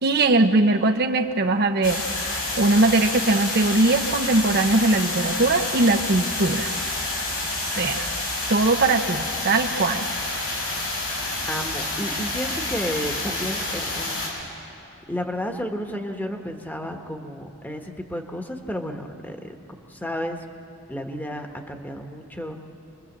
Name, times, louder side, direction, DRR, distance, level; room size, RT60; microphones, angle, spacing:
voice 1, 0.0-2.0 2.5-6.7 7.6-8.1 8.5-10.1, right 2 dB, 50° right, 5 dB, 0.8 m, -20 dB
sound 1, 1.8-14.3, left 2 dB, 90° left, 6.4 m, -28 dB
voice 2, 11.5-14.3 15.1-19.4 19.9-20.4 20.9-22.6, equal, 10° left, 4 dB, 1.4 m, -32 dB
28.0 x 21.5 x 7.4 m, 2.7 s
head